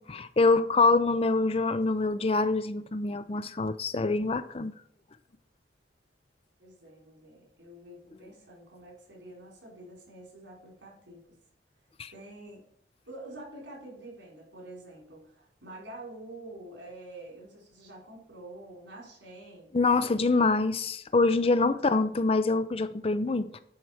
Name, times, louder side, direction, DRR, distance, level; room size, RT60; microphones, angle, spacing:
voice 1, 0.0-4.7 12.0-12.1 19.7-23.6, left 3 dB, 35° left, 0.5 m, -25 dB
voice 2, 6.6-11.3 12.1-12.6 13.1-19.7 20.0-20.4 21.7-21.9, right 1 dB, 80° right, 4.4 m, -47 dB
9.4 x 4.8 x 5.7 m
head